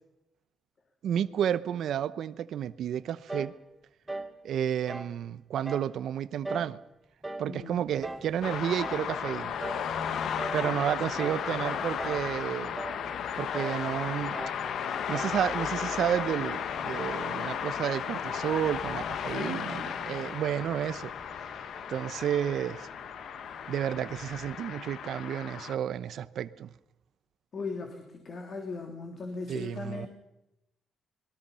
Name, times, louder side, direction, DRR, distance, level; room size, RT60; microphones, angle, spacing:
voice 1, 1.0-3.5 4.4-6.8 7.4-9.5 10.5-12.8 13.4-14.4 14.8-21.1 21.4-21.5 21.9-22.9 23.7-26.7 29.5-30.1, right 9 dB, 70° right, 0.9 m, -31 dB
sound 1, 3.3-3.6 4.1-4.4 4.9-5.2 5.6-5.9 6.4-6.8 7.2-7.5 8.0-8.3 8.8-9.1 9.6-9.9 10.4-10.7 11.2-11.5 12.0-12.3 12.7-13.0 13.5-13.8 14.3-14.6 15.1-15.4, right 2 dB, 10° right, 1.7 m, -39 dB
voice 2, 7.4-7.9 10.6-10.8 19.3-20.0 27.5-30.1, left 3 dB, 50° left, 3.3 m, -38 dB
sound 2, 7.9-24.6, equal, 15° left, 4.4 m, -51 dB
sound 3, 8.4-25.8, left 8 dB, 70° left, 1.1 m, -35 dB
25.5 x 22.0 x 5.7 m
cardioid pair, 90°, 0 cm